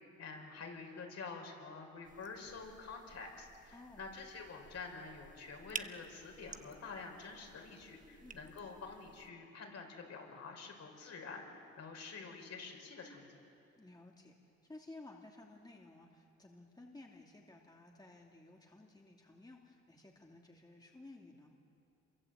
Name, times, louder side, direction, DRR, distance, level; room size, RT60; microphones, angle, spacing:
voice 1, 0.2-13.4, left 4 dB, 60° left, 2 dB, 5.9 m, -48 dB
sound 1, 2.0-9.3, right 4 dB, 25° right, 1.1 m, -52 dB
voice 2, 3.7-4.0 8.2-8.4 13.7-21.5, left 2 dB, 15° left, 0 dB, 2.6 m, -56 dB
27.0 x 23.5 x 8.2 m, 2.7 s
cardioid pair, 90°, 30 cm